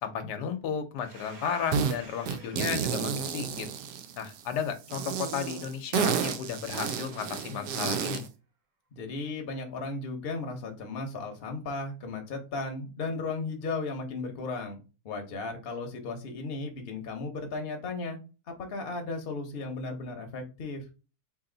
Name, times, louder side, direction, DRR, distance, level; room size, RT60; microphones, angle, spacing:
voice 1, 0.0-3.7 4.2-8.2, left 7 dB, 85° left, 7 dB, 1.3 m, -34 dB
Domestic sounds home sounds, 1.0-5.4, right 2 dB, 55° right, 1.2 m, -52 dB
sound 1, 1.7-2.0 2.3-4.4 4.9-8.3, right 7 dB, 85° right, 1.2 m, -31 dB
voice 2, 8.9-14.8 15.0-18.2 18.6-20.8, left 3 dB, 45° left, 4 dB, 0.9 m, -35 dB
3.1 x 2.7 x 3.8 m, 0.32 s
omnidirectional pair, 1.7 m